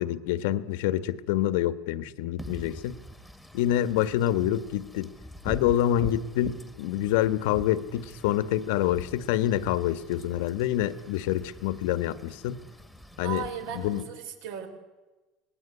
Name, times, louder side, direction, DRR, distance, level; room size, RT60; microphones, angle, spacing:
voice 1, 0.0-3.0 3.5-5.1 5.4-12.6 13.2-13.4 13.8-14.0, left 12 dB, 85° left, 13 dB, 1.4 m, -27 dB
Wind / Rain, 2.4-14.0, left 1 dB, ahead, 1.5 m, -44 dB
voice 2, 13.2-14.7, right 8 dB, 85° right, 7 dB, 5.6 m, -36 dB
27.0 x 19.5 x 9.8 m, 1.2 s
cardioid pair, 175°, 0 cm